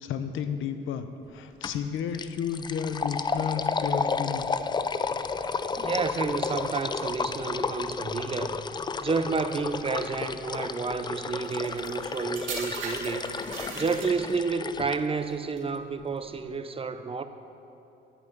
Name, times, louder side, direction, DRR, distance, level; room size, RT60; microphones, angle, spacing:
voice 1, 0.0-4.4, left 7 dB, 80° left, 9 dB, 0.7 m, -32 dB
sound 1, 1.6-1.9 2.1-15.0, left 5 dB, 20° left, 0.3 m, -32 dB
voice 2, 5.8-8.6 9.0-13.3 13.7-17.2, right 4 dB, 30° right, 10 dB, 0.6 m, -30 dB
sound 2, 11.4-14.5 15.3-15.6, right 4 dB, 75° right, 1.8 m, -39 dB
11.0 x 5.4 x 7.9 m, 2.8 s
cardioid pair, 90°, 20 cm